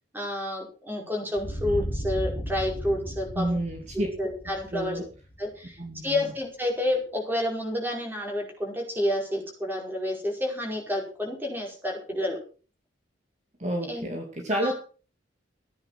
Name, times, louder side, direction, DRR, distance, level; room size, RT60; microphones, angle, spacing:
voice 1, 0.1-3.6 4.2-5.0 5.4-12.4 13.9-14.1 14.5-14.7, left 1 dB, 10° right, 1 dB, 5.0 m, -29 dB
sound 1, 1.4-6.0, equal, 40° left, 3.2 m, -35 dB
voice 2, 3.4-4.1 4.7-5.1 5.8-6.2 13.6-14.7, right 1 dB, 35° right, 2 dB, 2.5 m, -29 dB
14.5 x 10.5 x 6.0 m, 0.38 s
head